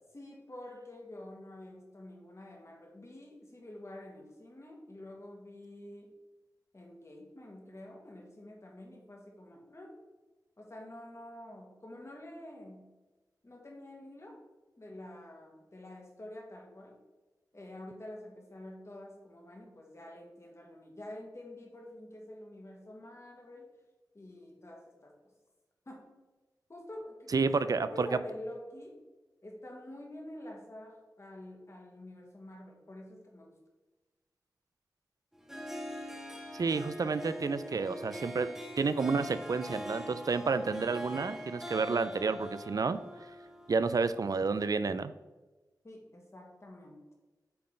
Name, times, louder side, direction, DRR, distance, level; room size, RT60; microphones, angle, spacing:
voice 1, 0.1-6.2 6.7-10.0 10.6-12.9 13.4-14.4 14.8-17.0 17.5-23.7 24.1-25.3 25.9-26.1 26.7-29.0 29.4-33.6 45.8-47.0, left 1 dB, 45° left, 0 dB, 1.7 m, -48 dB
voice 2, 27.3-28.1 36.5-38.5 38.8-43.0 43.7-45.1, right 4 dB, 65° right, 13 dB, 0.4 m, -30 dB
Harp, 35.3-44.1, equal, 5° right, 1.1 m, -43 dB
8.6 x 3.8 x 3.8 m, 1.2 s
wide cardioid pair, 55°, 7 cm